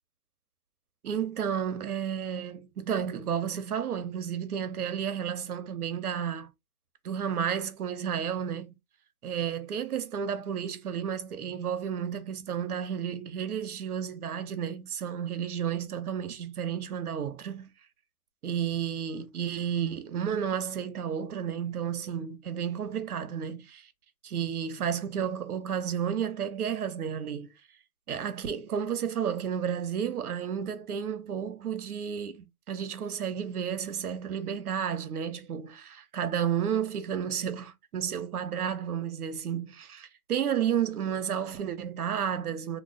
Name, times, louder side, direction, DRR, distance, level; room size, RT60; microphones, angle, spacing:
voice 1, 1.0-6.5 7.0-8.8 9.2-17.7 18.4-23.9 24.2-27.5 28.1-42.8, right 8 dB, 80° right, 0.9 m, -32 dB
3.0 x 2.1 x 3.7 m
hypercardioid pair, 160°, 44 cm